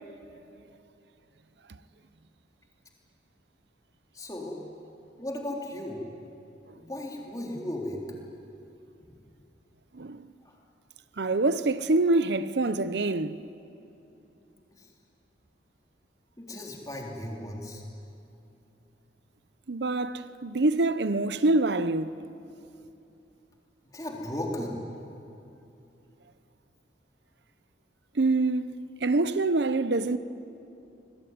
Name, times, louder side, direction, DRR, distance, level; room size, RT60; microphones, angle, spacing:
voice 1, 4.1-4.6 5.2-6.0 6.7-8.0 9.0-9.2 10.4-10.6 14.7-14.9 16.4-17.8 23.9-24.8, left 1 dB, 20° left, 3.6 m, -36 dB
voice 2, 9.9-10.2 11.2-13.4 19.7-22.2 28.2-30.2, right 2 dB, 70° right, 0.7 m, -25 dB
26.5 x 21.5 x 9.5 m
head